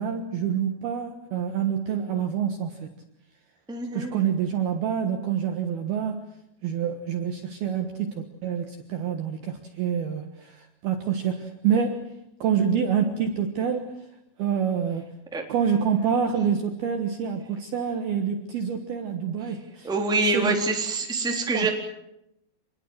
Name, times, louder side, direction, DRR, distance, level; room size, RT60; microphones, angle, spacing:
voice 1, 0.0-2.9 3.9-6.2 6.6-12.1 12.4-13.9 14.4-15.1 15.5-19.9 20.3-20.6 21.1-21.3 21.5-21.7, right 7 dB, 65° right, 5 dB, 2.7 m, -27 dB
voice 2, 3.7-4.2 15.3-15.4 19.8-21.7, right 3 dB, ahead, 2 dB, 2.4 m, -25 dB
27.0 x 21.0 x 7.9 m, 0.81 s
omnidirectional pair, 6.0 m